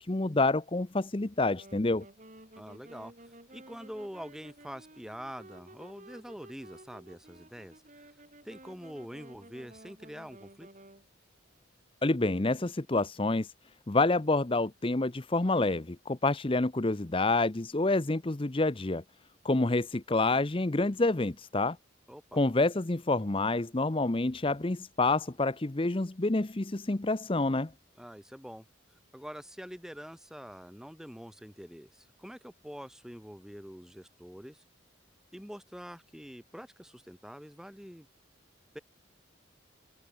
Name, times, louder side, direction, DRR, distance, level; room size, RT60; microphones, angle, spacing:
voice 1, 0.0-2.0 12.0-13.5 13.9-19.0 19.4-21.8 22.3-27.7, left 2 dB, 25° left, 0.7 m, -28 dB
Wind instrument woodwind instrument, 1.5-11.0, right 1 dB, 40° right, 5.5 m, -53 dB
voice 2, 2.6-7.8 8.4-10.7 22.1-22.4 28.0-28.7 29.1-34.6 35.3-38.1 38.7-38.8, equal, 5° right, 2.2 m, -45 dB
head